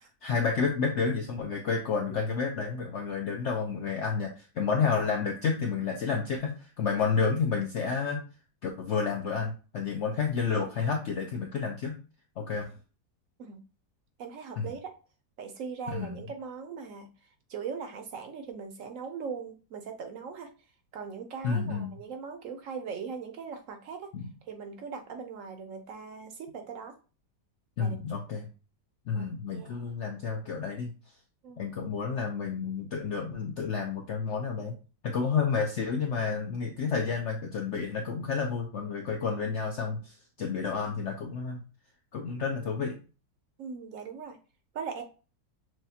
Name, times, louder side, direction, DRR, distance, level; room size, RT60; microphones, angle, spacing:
voice 1, 0.2-8.2 8.6-12.0 12.4-12.7 14.6-14.7 15.9-16.2 21.4-21.9 24.1-24.3 27.8-28.5 29.1-30.9 31.6-34.7 35.0-41.6 42.1-43.0, left 5 dB, 75° left, 2 dB, 0.6 m, -30 dB
voice 2, 14.2-15.0 15.4-17.1 17.5-20.5 20.9-24.1 24.4-26.9 27.8-28.0 29.1-29.3 29.5-29.8 31.4-31.7 43.6-44.4 44.7-45.0, right 6 dB, 65° right, 6 dB, 0.8 m, -40 dB
6.1 x 2.2 x 2.8 m, 0.35 s
omnidirectional pair, 1.8 m